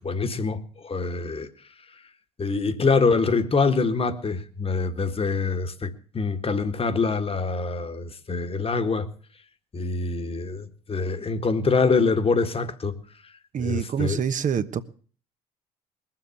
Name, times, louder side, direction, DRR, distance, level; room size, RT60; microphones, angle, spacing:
voice 1, 0.0-1.5 2.4-9.1 9.7-13.0 13.6-14.2, left 4 dB, 30° left, 1.8 m, -25 dB
voice 2, 13.5-14.8, right 7 dB, 40° right, 1.1 m, -26 dB
21.0 x 7.7 x 7.1 m
hypercardioid pair, 55°, 19 cm